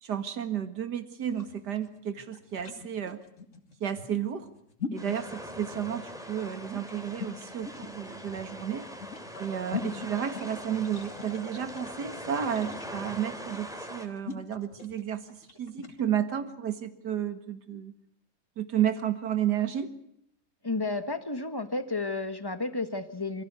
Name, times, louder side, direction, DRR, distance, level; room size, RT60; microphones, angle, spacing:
voice 1, 0.0-3.2 3.8-4.5 4.9-8.9 9.4-15.3 15.6-17.9 18.6-19.9, right 9 dB, 75° right, 9 dB, 2.4 m, -32 dB
sound 1, 1.2-16.0, left 5 dB, 45° left, 2.9 m, -42 dB
sound 2, 5.0-14.1, equal, ahead, 3.2 m, -42 dB
voice 2, 20.6-23.4, left 3 dB, 15° left, 9 dB, 1.5 m, -32 dB
27.0 x 16.0 x 8.2 m, 0.76 s
omnidirectional pair, 1.8 m